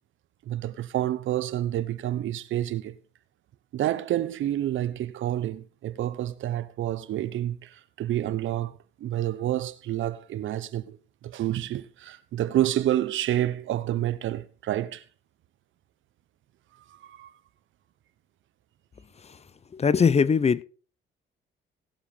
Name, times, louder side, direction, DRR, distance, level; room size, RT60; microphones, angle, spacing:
voice 1, 0.5-2.9 3.7-8.7 9.0-11.0 11.2-15.0 17.0-17.3, right 12 dB, 75° right, 1.0 m, -28 dB
voice 2, 19.7-20.6, left 6 dB, 35° left, 0.7 m, -21 dB
18.0 x 7.1 x 5.1 m
cardioid pair, 90°, 20 cm